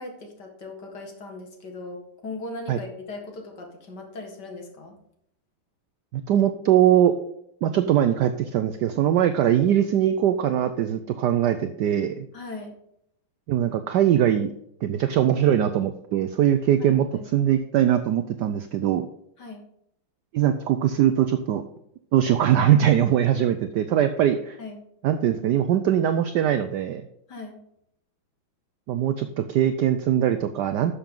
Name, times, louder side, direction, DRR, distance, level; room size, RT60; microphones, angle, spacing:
voice 1, 0.0-5.0 12.3-12.7 16.8-17.3 19.4-19.6 24.6-24.8 27.3-27.6, left 2 dB, 55° left, 2 dB, 2.3 m, -38 dB
voice 2, 6.1-7.1 7.6-12.3 13.5-14.5 14.8-17.1 17.3-19.1 20.3-21.6 22.1-24.6 25.0-27.0 28.9-31.0, right 10 dB, 70° right, 9 dB, 1.1 m, -21 dB
11.5 x 6.9 x 3.8 m, 0.74 s
omnidirectional pair, 2.3 m